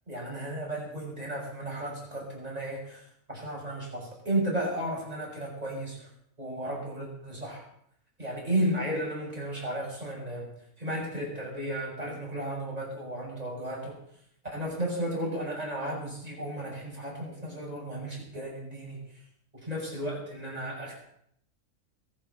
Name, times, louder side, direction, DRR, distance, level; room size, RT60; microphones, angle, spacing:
voice 1, 0.1-6.1 6.4-7.6 8.2-10.5 10.8-13.9 14.5-19.2 19.5-20.9, right 1 dB, 25° right, -3 dB, 6.5 m, -34 dB
22.0 x 7.6 x 7.0 m, 0.71 s
omnidirectional pair, 1.5 m